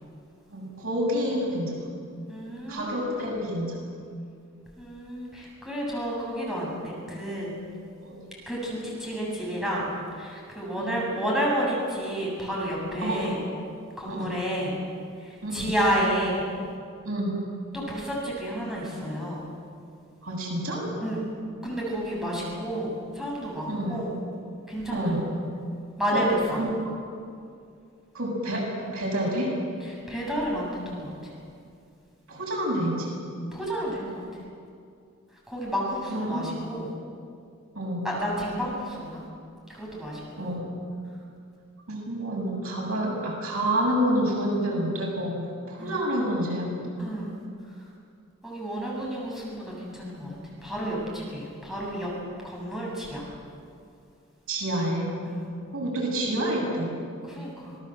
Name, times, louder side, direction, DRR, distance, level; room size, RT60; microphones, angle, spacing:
voice 1, 0.5-1.9 2.7-3.8 8.0-8.3 10.8-11.0 13.0-13.3 14.0-14.3 15.4-15.7 17.0-17.3 20.2-20.9 23.7-24.0 24.9-25.3 26.1-26.2 26.6-26.7 28.1-28.7 28.9-29.5 32.3-33.1 36.1-36.4 37.7-38.1 40.4-40.7 41.9-45.4 45.7-46.7 54.5-55.1 55.7-56.9, right 1 dB, 90° right, -2 dB, 7.8 m, -28 dB
voice 2, 2.3-3.3 4.8-7.5 8.5-13.4 14.0-14.8 15.2-16.5 17.7-19.4 21.0-21.3 21.6-24.1 24.7-25.3 26.0-26.6 29.8-31.3 33.5-34.4 35.3-36.9 38.0-39.2 39.7-40.6 45.8-46.1 47.0-47.3 47.6-47.9 48.4-52.1 52.4-53.3 55.2-55.5 57.2-57.8, equal, ahead, -5 dB, 7.7 m, -31 dB
26.0 x 19.5 x 7.9 m, 2.4 s
head